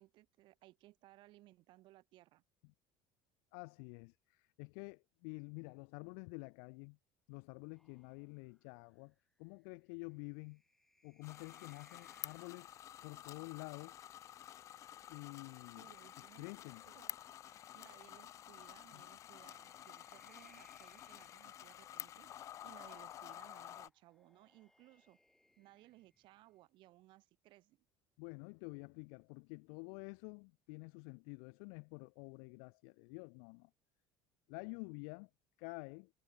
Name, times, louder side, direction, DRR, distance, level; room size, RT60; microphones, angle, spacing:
voice 1, 0.0-2.4 15.8-16.5 16.8-17.2 17.7-22.3 22.6-25.2 25.6-27.8, right 17 dB, 50° right, 3.7 m, -62 dB
voice 2, 3.5-7.0 7.3-9.1 9.4-10.6 11.0-12.7 13.0-14.0 15.1-15.9 16.4-16.8 18.9-19.0 28.2-33.7 34.5-35.3 35.6-36.1, left 40 dB or more, 80° left, 0.5 m, -49 dB
sound 1, 7.7-13.3 14.7-17.6 19.0-22.5 23.7-26.7, left 1 dB, 5° left, 1.7 m, -73 dB
sound 2, 11.2-23.9, left 11 dB, 30° left, 0.4 m, -51 dB
cardioid pair, 180°, 11 cm